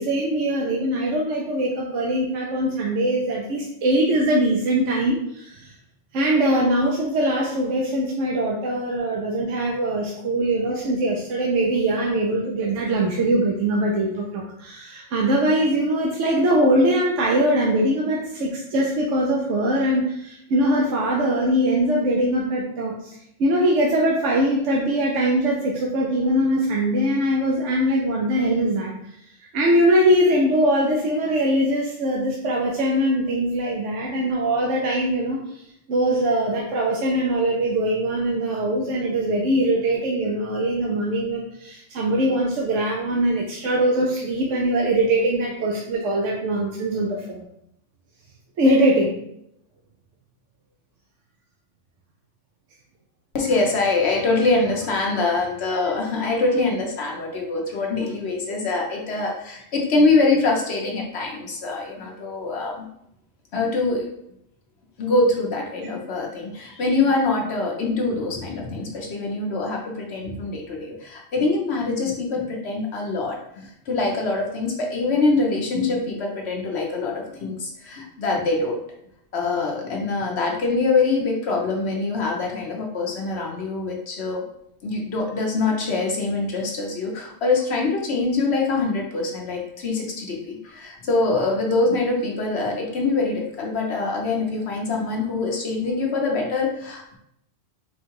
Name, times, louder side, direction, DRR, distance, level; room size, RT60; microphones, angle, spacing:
voice 1, 0.0-5.7 6.1-28.9 29.5-35.4 35.9-47.5 48.6-49.1, right 1 dB, 80° right, -2 dB, 1.0 m, -22 dB
voice 2, 53.3-62.9 63.5-64.1 65.0-78.8 79.3-84.4 84.8-97.1, left 3 dB, 60° left, 0 dB, 1.2 m, -24 dB
4.4 x 2.3 x 4.6 m, 0.75 s
omnidirectional pair, 1.3 m